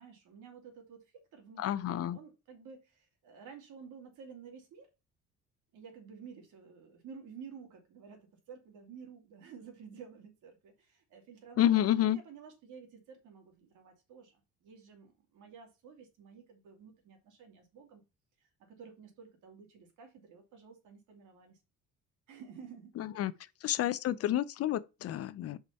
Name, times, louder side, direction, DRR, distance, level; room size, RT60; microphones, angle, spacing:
voice 1, 0.0-4.9 5.7-18.0 18.4-21.6 22.3-22.9 23.3-23.4, right 6 dB, 80° right, 2.7 m, -52 dB
voice 2, 1.6-2.2 11.6-12.2 23.0-23.3 23.6-25.6, left 12 dB, 50° left, 0.6 m, -29 dB
5.2 x 5.1 x 5.6 m
cardioid pair, 145°, 30 cm